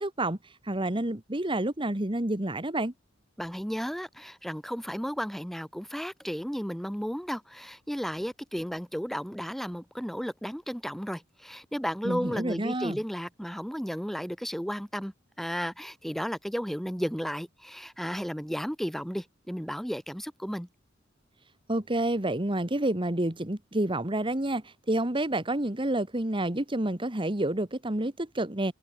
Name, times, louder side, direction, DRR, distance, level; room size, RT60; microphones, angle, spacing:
voice 1, 0.0-2.9 12.0-13.0 21.7-28.7, right 1 dB, 25° right, 1.8 m, -29 dB
voice 2, 3.4-20.7, equal, ahead, 3.5 m, -34 dB
head